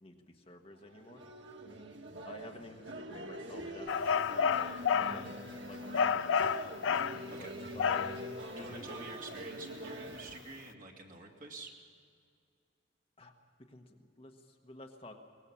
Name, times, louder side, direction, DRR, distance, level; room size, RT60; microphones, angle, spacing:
voice 1, 0.0-1.2 2.2-4.7 5.1-5.3 5.6-6.5 7.3-8.1 8.5-9.1 13.2-13.3 13.7-15.1, left 2 dB, 30° left, 3 dB, 1.3 m, -51 dB
sound 1, 0.7-10.4, right 1 dB, 75° right, 1.8 m, -44 dB
sound 2, 3.9-5.2 5.9-7.2 7.8-8.2, left 6 dB, 85° left, 0.4 m, -30 dB
voice 2, 7.3-7.6 8.6-11.7, right 3 dB, 45° right, 1 dB, 2.5 m, -48 dB
23.0 x 19.0 x 7.1 m, 2.3 s
head